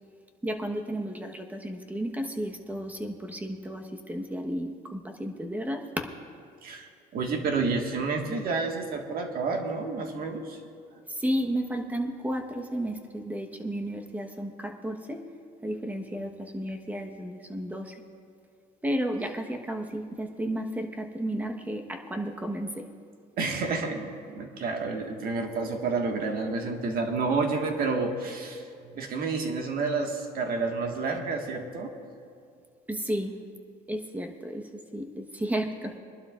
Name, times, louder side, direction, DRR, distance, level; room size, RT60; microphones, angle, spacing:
voice 1, 0.4-6.1 11.1-15.2 15.6-18.0 18.8-22.8 32.9-33.3 33.9-35.9, right 1 dB, 10° right, 4 dB, 1.2 m, -33 dB
voice 2, 6.6-10.6 23.4-31.9, right 4 dB, 60° right, 2 dB, 1.7 m, -30 dB
24.0 x 11.5 x 2.5 m, 2.4 s
cardioid pair, 110°, 17 cm